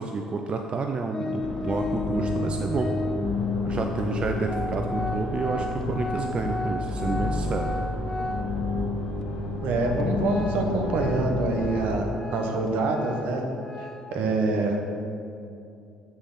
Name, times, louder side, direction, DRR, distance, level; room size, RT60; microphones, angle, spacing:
voice 1, 0.0-2.9 3.6-7.7, right 4 dB, 40° right, 4 dB, 0.5 m, -30 dB
Organ, 1.1-3.4 4.1-4.2 4.4-8.8 9.2-9.3 9.8-14.2, left 1 dB, 20° left, 0.5 m, -34 dB
sound 1, 1.4-12.0, left 2 dB, 75° left, 1.7 m, -30 dB
voice 2, 9.6-13.4 13.8-14.8, right 2 dB, 70° right, 3 dB, 0.9 m, -26 dB
8.1 x 3.4 x 5.6 m, 2.5 s
hypercardioid pair, 60°, 3 cm